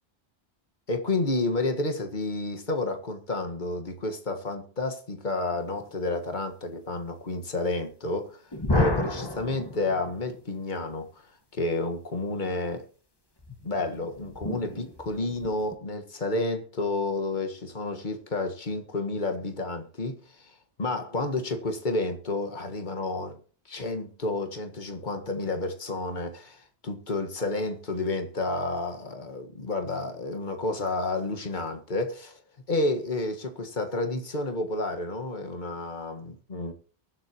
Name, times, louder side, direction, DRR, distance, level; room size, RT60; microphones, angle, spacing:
voice 1, 0.9-8.4 8.7-11.2 11.6-12.8 13.6-20.2 20.8-23.4 23.7-32.4 32.7-36.7, left 2 dB, 45° left, 1.8 m, -30 dB
sound 1, 8.5-10.4 13.4-15.8, left 2 dB, 20° left, 1.6 m, -31 dB
23.0 x 7.8 x 3.0 m
omnidirectional pair, 1.1 m